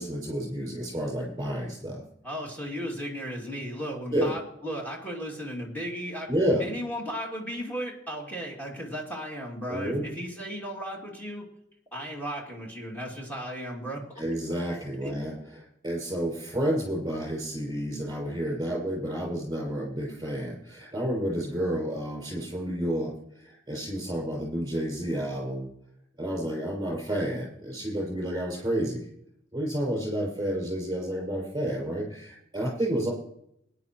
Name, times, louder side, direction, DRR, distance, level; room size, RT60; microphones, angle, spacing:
voice 1, 0.0-2.0 4.1-4.3 6.3-6.6 9.7-10.0 14.2-25.7 26.2-29.1 29.5-33.1, equal, 20° right, -2 dB, 5.7 m, -30 dB
voice 2, 2.2-6.3 6.6-11.5 11.9-14.2 15.0-15.1, equal, 10° left, -2 dB, 2.4 m, -35 dB
20.0 x 10.0 x 3.0 m, 0.75 s
head